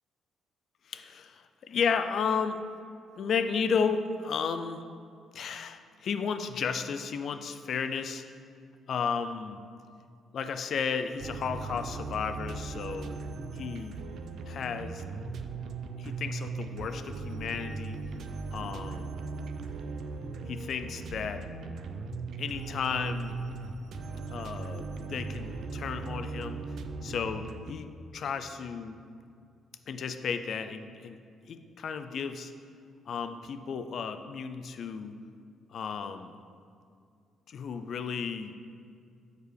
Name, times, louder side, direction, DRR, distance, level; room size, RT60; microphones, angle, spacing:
voice 1, 0.9-2.6 3.2-4.8 5.3-8.2 8.9-9.6 10.3-13.2 13.5-14.0 14.5-15.0 16.0-18.0 18.5-19.3 20.5-21.4 22.4-23.4 24.3-26.6 27.0-29.0 29.9-31.2 31.5-32.5 33.1-35.1 35.7-36.3 37.5-38.6, left 6 dB, 60° left, 9 dB, 0.3 m, -33 dB
sound 1, 11.2-27.7, right 3 dB, 70° right, 0.3 m, -38 dB
6.6 x 4.6 x 3.3 m, 2.4 s
cardioid pair, 90°, 0 cm